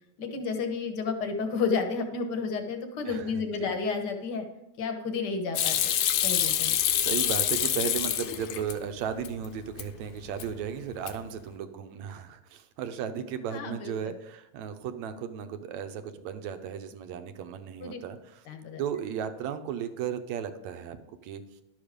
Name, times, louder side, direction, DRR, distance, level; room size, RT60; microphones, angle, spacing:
voice 1, 0.2-4.4 4.8-5.8 6.2-6.7 13.5-13.9 17.8-18.0 18.5-18.8, left 4 dB, 55° left, 5 dB, 1.2 m, -31 dB
voice 2, 3.1-3.8 7.0-18.4 18.8-21.0 21.2-21.4, right 8 dB, 75° right, 8 dB, 2.0 m, -35 dB
Hands / Sink (filling or washing), 5.6-8.7 9.1-9.9 10.2-10.7 10.9-11.4, left 11 dB, 80° left, 2.1 m, -27 dB
12.0 x 7.1 x 5.1 m, 0.91 s
omnidirectional pair, 3.3 m